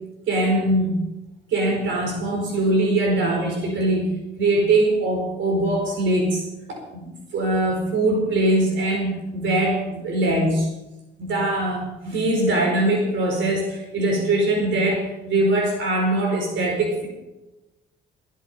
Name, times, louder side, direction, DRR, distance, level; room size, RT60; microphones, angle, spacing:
voice 1, 0.3-1.0 1.5-6.4 6.7-10.7 11.2-17.1, right 1 dB, 75° right, 0 dB, 4.6 m, -22 dB
21.0 x 8.1 x 5.5 m, 1.0 s
cardioid pair, 90°, 20 cm